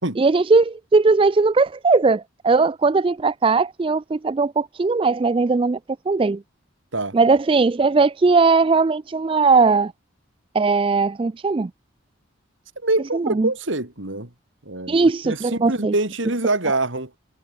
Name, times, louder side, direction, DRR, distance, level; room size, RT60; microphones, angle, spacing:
voice 1, 0.2-5.8 6.1-6.4 7.1-9.9 10.5-11.7 13.1-13.5 14.9-15.9 16.7-16.8, right 4 dB, 25° right, 0.3 m, -18 dB
voice 2, 12.8-14.3 14.7-15.0 15.2-17.1, right 2 dB, 65° right, 2.8 m, -24 dB
head